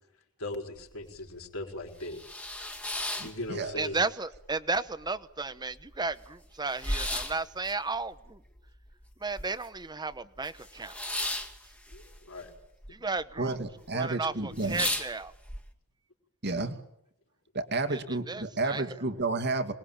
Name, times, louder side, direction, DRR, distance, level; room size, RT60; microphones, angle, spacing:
voice 1, 0.4-2.2 3.2-4.0 11.9-12.5, left 1 dB, 65° left, 4.8 m, -38 dB
sound 1, 0.8-0.9 1.3-1.4 1.8-4.0 4.3-5.1 5.4-5.5 5.7-9.8 10.1-12.9 13.2-13.7 14.1-14.2 14.5-15.6, left 1 dB, 5° left, 2.2 m, -35 dB
voice 2, 3.2-3.7 13.4-14.9 16.4-16.8 17.5-19.7, right 3 dB, 50° right, 2.5 m, -31 dB
voice 3, 3.8-8.4 9.2-11.0 12.9-13.5 13.9-15.3 17.9-18.0 18.3-18.9, right 3 dB, 20° right, 1.1 m, -34 dB
26.5 x 21.0 x 8.9 m
head